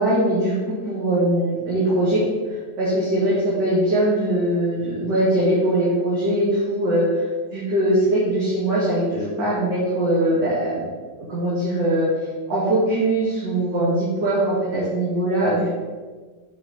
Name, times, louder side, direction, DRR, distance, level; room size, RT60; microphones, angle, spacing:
voice 1, 0.0-2.2 2.5-7.3 7.5-10.9 11.2-12.1 12.5-15.7, right 1 dB, 70° right, -9 dB, 2.4 m, -21 dB
7.1 x 5.2 x 3.9 m, 1.4 s
omnidirectional pair, 1.9 m